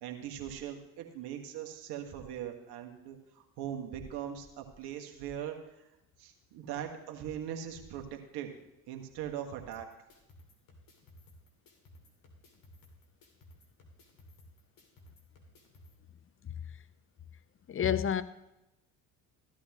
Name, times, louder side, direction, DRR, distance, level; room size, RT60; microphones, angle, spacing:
voice 1, 0.0-5.9 6.2-8.6 8.9-9.9, right 9 dB, 60° right, 1.8 m, -40 dB
sound 1, 9.7-15.9, left 1 dB, 50° left, 2.7 m, -58 dB
voice 2, 17.7-18.2, left 9 dB, 30° left, 0.8 m, -29 dB
14.5 x 12.5 x 3.1 m
hypercardioid pair, 60°, 43 cm